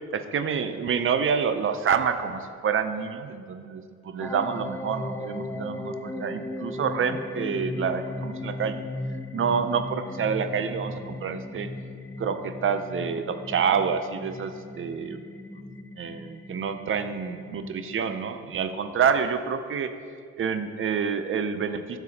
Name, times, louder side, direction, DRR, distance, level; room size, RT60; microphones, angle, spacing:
voice 1, 0.1-8.9 9.3-11.7 12.2-15.2 16.0-19.9 20.4-22.0, right 6 dB, 45° right, 9 dB, 0.6 m, -28 dB
sound 1, 4.2-18.2, left 2 dB, 10° left, 0.4 m, -37 dB
10.5 x 6.8 x 2.8 m, 2.2 s
cardioid pair, 90°, 30 cm